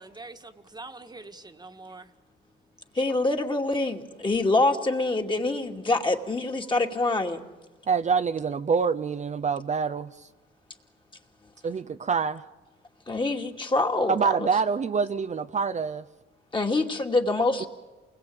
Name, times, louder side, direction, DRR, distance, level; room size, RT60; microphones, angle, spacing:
voice 1, 0.0-2.1 6.6-6.7, right 3 dB, 20° right, 1.8 m, -44 dB
voice 2, 2.9-7.4 13.1-14.5 16.5-17.7, left 2 dB, 25° left, 2.6 m, -25 dB
voice 3, 7.9-10.3 11.6-12.4 14.1-16.0, right 5 dB, 35° right, 0.8 m, -26 dB
28.5 x 21.0 x 8.8 m
cardioid pair, 90°, 20 cm